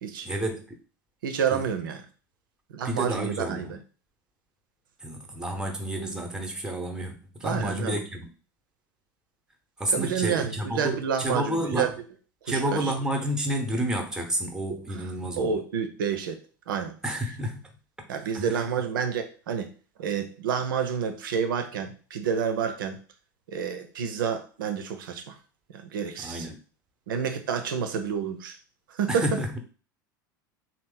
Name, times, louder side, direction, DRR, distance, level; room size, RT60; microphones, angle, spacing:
voice 1, 0.2-0.6 1.5-1.7 2.8-3.8 5.0-8.3 9.8-11.9 12.5-15.6 17.0-17.6 18.3-18.7 26.2-26.6 29.1-29.5, right 1 dB, 5° right, 0.8 m, -30 dB
voice 2, 1.2-2.0 2.7-3.8 7.4-8.0 9.9-11.9 12.4-12.9 15.4-16.4 16.7-17.0 18.1-19.7 20.0-23.0 23.5-25.4 25.7-26.5 27.1-28.6 28.9-29.2, right 7 dB, 80° right, 0.6 m, -29 dB
2.9 x 2.0 x 3.7 m
hypercardioid pair, 85°, 11 cm